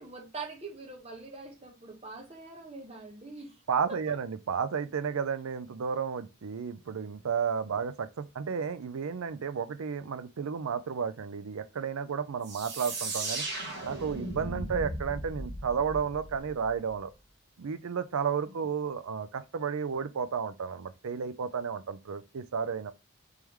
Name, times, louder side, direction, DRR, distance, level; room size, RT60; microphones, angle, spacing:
voice 1, 0.0-3.6 3.9-4.2, right 3 dB, 30° right, 1.0 m, -43 dB
voice 2, 3.7-13.4 13.8-17.1 17.6-22.9, right 6 dB, 75° right, 0.5 m, -32 dB
sound 1, 12.4-17.0, right 2 dB, 50° right, 1.3 m, -37 dB
3.6 x 3.3 x 3.1 m
head